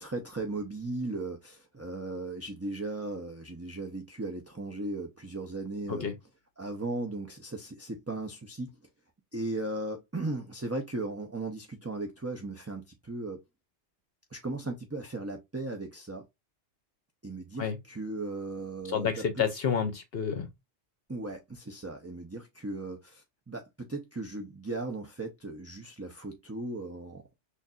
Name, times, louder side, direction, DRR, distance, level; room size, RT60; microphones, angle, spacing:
voice 1, 0.0-6.1 6.6-8.8 9.3-13.4 14.3-16.3 17.2-19.4 21.1-27.2, right 2 dB, 15° right, 0.5 m, -37 dB
voice 2, 18.9-20.5, left 7 dB, 60° left, 0.9 m, -29 dB
6.3 x 2.6 x 2.4 m
omnidirectional pair, 1.2 m